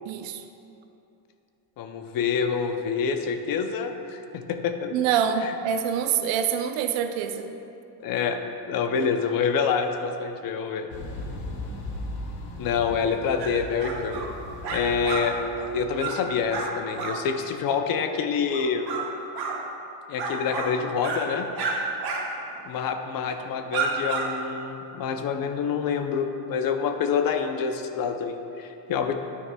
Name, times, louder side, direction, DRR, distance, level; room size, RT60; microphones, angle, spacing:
voice 1, 0.1-0.4 4.9-7.5, right 8 dB, 70° right, 8 dB, 0.6 m, -25 dB
voice 2, 1.8-4.9 5.4-5.5 8.0-8.4 8.7-10.9 12.6-14.3 14.7-15.4 15.7-18.9 20.1-21.5 22.7-29.1, left 6 dB, 50° left, 6 dB, 0.6 m, -27 dB
sound 1, 10.9-16.7, left 1 dB, 90° left, 1.3 m, -38 dB
sound 2, 13.4-13.5 13.8-14.3 14.6-15.2 15.6-15.7 15.9-16.2 16.5-16.7 17.0-17.2 18.5-19.0 19.3-19.6 20.2-20.7 21.0-21.2 21.5-21.7 22.0-22.2 22.5-22.7 23.3-23.4 23.7-24.3, right 5 dB, 55° right, 1.4 m, -30 dB
9.4 x 9.3 x 2.2 m, 2.8 s
cardioid pair, 135°, 46 cm